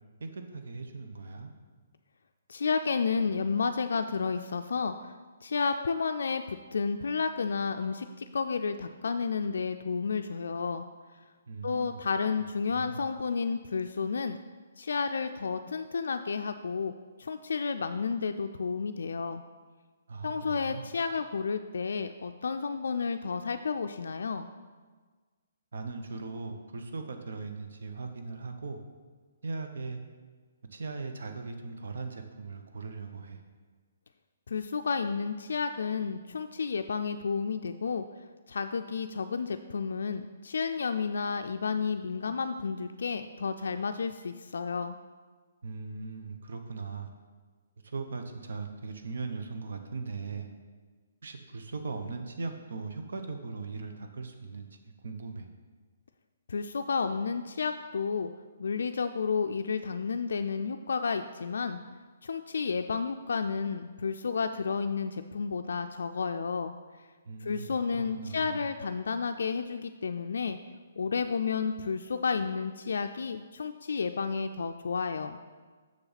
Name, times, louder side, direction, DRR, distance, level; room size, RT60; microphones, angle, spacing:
voice 1, 0.2-1.5 11.5-12.0 12.7-13.0 20.1-20.9 25.7-28.8 29.4-30.0 30.7-33.4 45.6-47.1 47.8-50.5 51.2-55.5 67.3-68.7, right 4 dB, 75° right, 6 dB, 0.8 m, -39 dB
voice 2, 2.5-5.1 5.4-10.9 11.6-14.4 14.8-16.9 17.2-19.4 20.2-24.5 34.5-38.1 38.5-45.0 56.5-58.3 58.6-61.8 62.2-66.7 67.4-70.6 71.0-75.4, left 5 dB, 80° left, 7 dB, 0.3 m, -31 dB
6.9 x 6.5 x 4.0 m, 1.4 s
hypercardioid pair, 165°, 0 cm